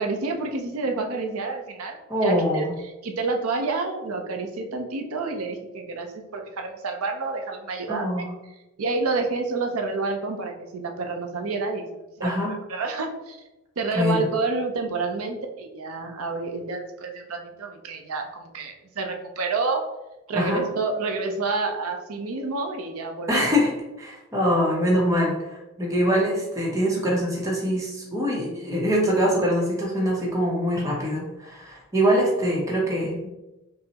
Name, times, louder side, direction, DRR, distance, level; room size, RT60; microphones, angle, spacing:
voice 1, 0.0-2.7 3.0-8.3 8.8-11.9 12.2-13.4 13.8-19.8 20.3-23.4 26.0-26.3, right 3 dB, 90° right, 4 dB, 0.5 m, -29 dB
voice 2, 2.1-2.8 7.9-8.3 12.2-12.6 13.9-14.3 20.3-20.6 23.3-23.7 24.0-33.3, equal, 15° right, -3 dB, 0.6 m, -23 dB
5.5 x 2.0 x 2.8 m, 1.0 s
head